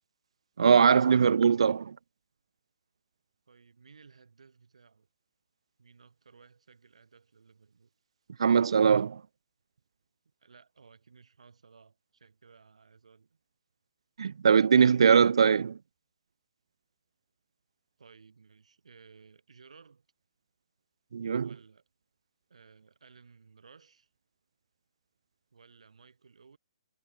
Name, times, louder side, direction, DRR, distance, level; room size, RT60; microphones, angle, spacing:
voice 1, 0.6-1.9 8.4-9.2 14.2-15.8 21.1-21.5, right 6 dB, 60° right, 0.4 m, -21 dB
voice 2, 3.5-5.1 5.8-7.9 10.4-13.4 18.0-20.1 21.4-21.8 22.5-24.1 25.5-26.6, right 5 dB, 80° right, 7.8 m, -58 dB
hypercardioid pair, 175°, 3 cm